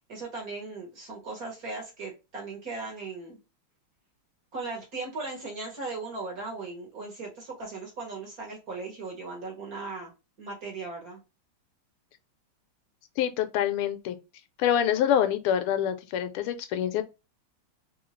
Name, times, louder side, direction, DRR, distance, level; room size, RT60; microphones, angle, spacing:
voice 1, 0.1-3.4 4.5-10.1 10.4-11.2, right 3 dB, 45° right, 1.6 m, -38 dB
voice 2, 13.2-14.2 14.6-17.0, left 10 dB, 85° left, 1.5 m, -26 dB
3.7 x 2.7 x 3.0 m
omnidirectional pair, 2.4 m